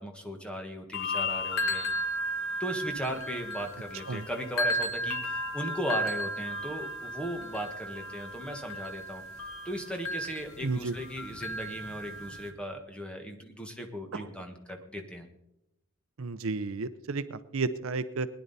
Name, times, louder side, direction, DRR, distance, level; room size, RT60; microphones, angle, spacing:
voice 1, 0.0-1.8 2.6-9.2 9.6-15.3, equal, 5° left, 3 dB, 1.5 m, -37 dB
sound 1, 0.9-12.5, equal, 85° left, 1.9 m, -34 dB
voice 2, 10.6-11.0 14.1-14.3 16.2-18.3, right 3 dB, 70° right, 13 dB, 0.6 m, -32 dB
20.0 x 10.5 x 4.1 m, 0.86 s
head